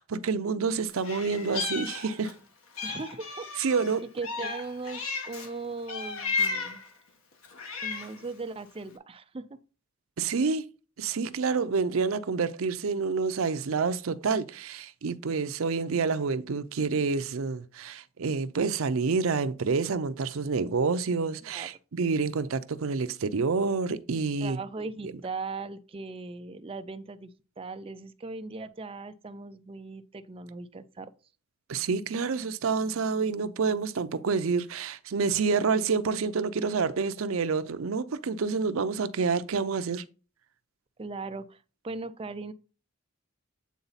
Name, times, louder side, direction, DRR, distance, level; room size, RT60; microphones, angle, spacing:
voice 1, 0.0-2.3 3.6-4.0 10.2-10.7 11.0-24.6 31.7-40.0, right 5 dB, 75° right, 0.5 m, -28 dB
Meow, 1.0-2.4 2.8-5.5 5.9-6.9 7.4-8.3, left 4 dB, 85° left, 1.4 m, -34 dB
voice 2, 2.8-3.5 4.1-6.8 7.8-9.4 21.4-21.7 24.4-31.1 41.0-41.6 41.8-42.5, right 3 dB, 25° right, 0.4 m, -38 dB
8.3 x 3.9 x 4.0 m
head